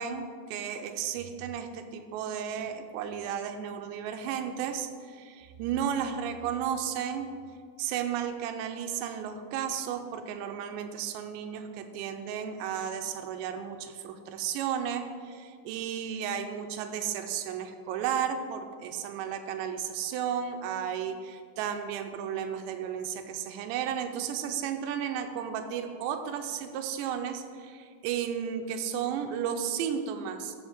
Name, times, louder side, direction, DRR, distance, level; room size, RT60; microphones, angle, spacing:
voice 1, 0.0-7.3 7.8-30.5, right 8 dB, 80° right, 6 dB, 2.8 m, -33 dB
13.0 x 7.0 x 3.6 m, 2.1 s
omnidirectional pair, 5.3 m